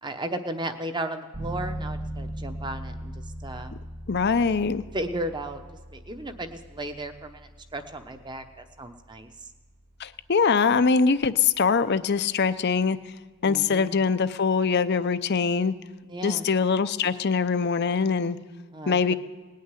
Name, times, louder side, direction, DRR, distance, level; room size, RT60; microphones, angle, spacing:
voice 1, 0.0-3.1 3.4-3.7 4.9-5.6 5.9-9.3 13.4-13.9 16.1-16.5 18.7-19.1, right 1 dB, 20° right, 7 dB, 0.9 m, -35 dB
sound 1, 1.3-11.9, right 1 dB, 85° right, 2.8 m, -40 dB
voice 2, 4.1-4.8 10.0-13.0 13.4-15.7 16.2-18.4 18.9-19.1, left 5 dB, 50° left, 13 dB, 0.6 m, -23 dB
19.0 x 6.5 x 9.8 m, 1.4 s
head